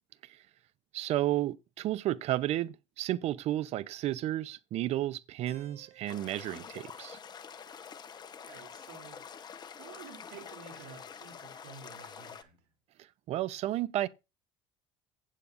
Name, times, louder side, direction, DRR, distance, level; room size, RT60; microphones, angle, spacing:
voice 1, 0.9-7.2 13.3-14.1, right 14 dB, 60° right, 0.6 m, -32 dB
Keyboard (musical), 5.5-9.4, right 5 dB, 20° right, 6.4 m, -63 dB
sound 1, 6.1-12.4, left 7 dB, 35° left, 1.0 m, -47 dB
voice 2, 8.4-9.2 9.7-12.6, right 7 dB, 90° right, 3.2 m, -51 dB
16.0 x 8.3 x 2.6 m
supercardioid pair, 100°, 12 cm